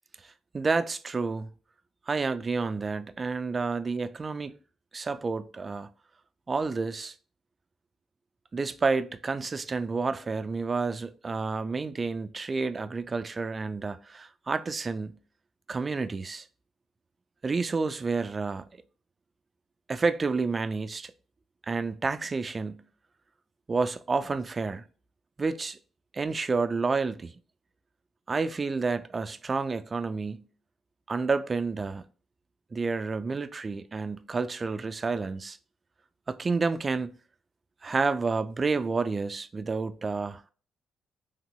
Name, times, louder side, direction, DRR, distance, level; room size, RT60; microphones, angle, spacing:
voice 1, 0.5-1.5 2.1-4.5 4.9-5.9 6.5-7.1 8.5-15.2 15.7-16.5 17.4-18.6 19.9-21.1 21.7-22.9 23.7-24.9 25.4-25.8 26.1-27.3 28.3-30.5 31.1-32.1 32.7-35.6 36.3-37.1 37.8-40.5, right 4 dB, 30° right, 0.3 m, -30 dB
3.8 x 2.8 x 2.2 m
cardioid pair, 90°, 0 cm